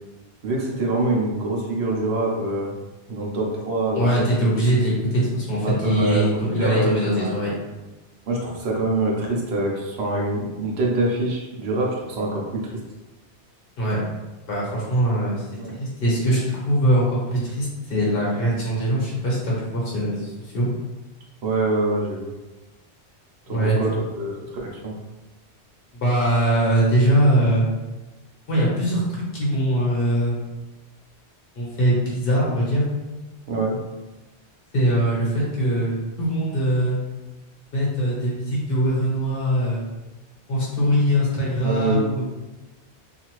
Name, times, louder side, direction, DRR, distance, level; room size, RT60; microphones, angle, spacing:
voice 1, 0.4-2.8 3.1-4.2 5.6-6.3 6.5-7.3 8.3-12.8 15.6-15.8 21.4-22.3 23.5-24.9 33.5-33.8 41.6-42.1, right 2 dB, 75° right, -3 dB, 0.9 m, -25 dB
voice 2, 3.9-7.5 13.8-14.0 14.5-15.5 15.8-20.7 23.5-23.8 26.0-27.7 28.5-30.3 31.6-32.8 34.7-37.0 37.7-39.8 40.5-42.2, right 1 dB, 60° left, -6 dB, 1.3 m, -22 dB
2.7 x 2.4 x 3.0 m, 1.1 s
omnidirectional pair, 1.1 m